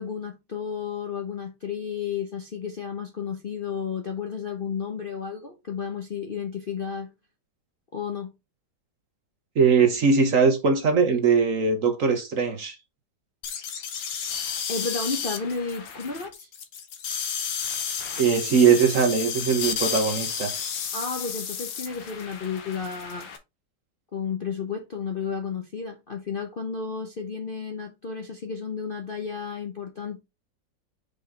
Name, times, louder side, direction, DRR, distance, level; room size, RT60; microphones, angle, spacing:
voice 1, 0.0-7.1 7.9-8.3 14.7-16.5 20.9-23.3 24.1-30.2, left 6 dB, 40° left, 0.8 m, -32 dB
voice 2, 9.5-12.8 18.2-20.5, right 5 dB, 50° right, 1.3 m, -21 dB
sound 1, 13.4-23.4, left 7 dB, 90° left, 1.8 m, -32 dB
5.3 x 5.1 x 3.7 m
omnidirectional pair, 2.0 m